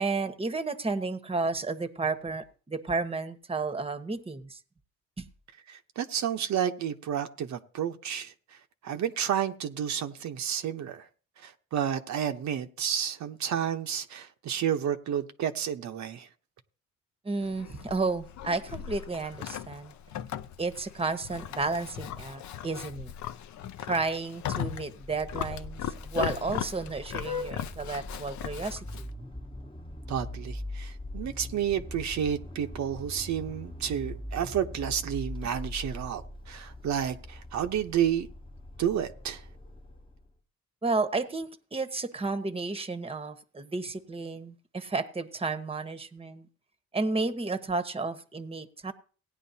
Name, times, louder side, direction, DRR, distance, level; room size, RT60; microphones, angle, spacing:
voice 1, 0.0-4.6 5.2-5.3 17.2-19.9 20.6-23.1 23.9-29.1 40.8-46.5 46.9-48.9, right 3 dB, 20° right, 1.1 m, -32 dB
voice 2, 5.7-8.3 8.8-11.1 11.4-16.3 30.1-38.3 38.8-39.4, right 9 dB, 65° right, 1.0 m, -31 dB
Livestock farm animals working animals, 17.4-29.1, left 10 dB, 70° left, 0.7 m, -38 dB
Vehicle horn car horn honking, 24.9-40.3, left 1 dB, 15° left, 1.3 m, -41 dB
17.5 x 9.9 x 2.8 m
cardioid pair, 90°, 30 cm